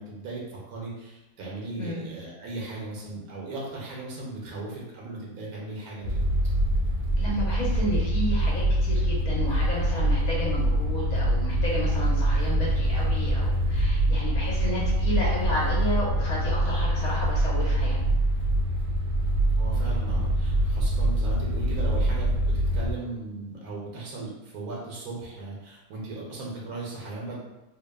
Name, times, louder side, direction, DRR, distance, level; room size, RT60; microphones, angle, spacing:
voice 1, 0.0-6.2 19.5-22.4 22.7-27.4, right 2 dB, 85° right, -4 dB, 1.1 m, -37 dB
sound 1, 6.0-22.9, right 1 dB, 65° right, 0.7 m, -24 dB
voice 2, 7.2-18.0, equal, 75° left, -6 dB, 1.3 m, -32 dB
3.0 x 2.1 x 2.2 m, 1.0 s
omnidirectional pair, 1.5 m